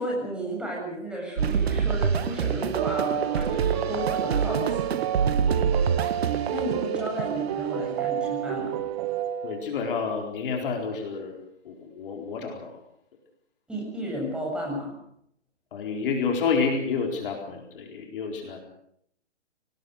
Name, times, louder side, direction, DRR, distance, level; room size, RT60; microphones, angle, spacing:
voice 1, 0.0-5.5 6.5-8.8 13.7-14.9, equal, 5° right, -2 dB, 7.3 m, -33 dB
sound 1, 1.4-7.4, right 6 dB, 60° right, 1.9 m, -27 dB
sound 2, 2.7-9.7, right 11 dB, 30° right, 1.3 m, -30 dB
voice 2, 9.4-11.4 11.6-12.8 15.7-18.6, left 5 dB, 50° left, 2 dB, 4.3 m, -29 dB
24.5 x 19.0 x 6.5 m, 0.70 s
hypercardioid pair, 140°, 35 cm